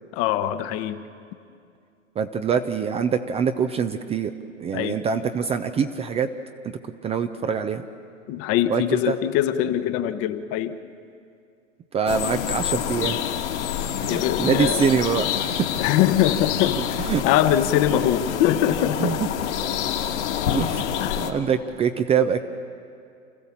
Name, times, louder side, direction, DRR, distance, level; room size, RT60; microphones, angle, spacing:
voice 1, 0.2-1.0 4.7-5.0 8.3-10.8 14.1-14.8 15.8-19.2 21.0-21.2, left 11 dB, 35° left, 10 dB, 1.1 m, -23 dB
voice 2, 2.2-4.3 4.6-6.3 6.6-7.8 8.7-9.1 11.9-13.3 14.0-15.7 16.7-17.2 19.0-19.3 20.5-20.9 21.2-22.4, right 6 dB, 15° right, 8 dB, 0.6 m, -24 dB
sound 1, 12.1-21.3, left 9 dB, 60° left, 2.0 m, -27 dB
29.0 x 14.5 x 7.3 m, 2.4 s
hypercardioid pair, 115°, 39 cm